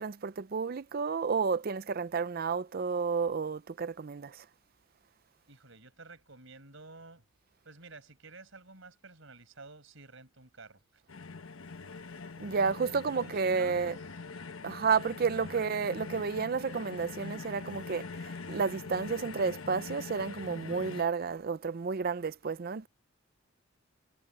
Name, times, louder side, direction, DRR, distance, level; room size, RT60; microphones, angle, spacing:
voice 1, 0.0-4.4 12.4-13.9 14.6-22.9, right 5 dB, 45° right, 0.4 m, -31 dB
voice 2, 5.5-7.2 7.6-11.0 13.1-14.2 15.4-15.7, right 3 dB, 65° right, 5.3 m, -51 dB
sound 1, 11.1-21.0, left 4 dB, 75° left, 1.1 m, -43 dB
head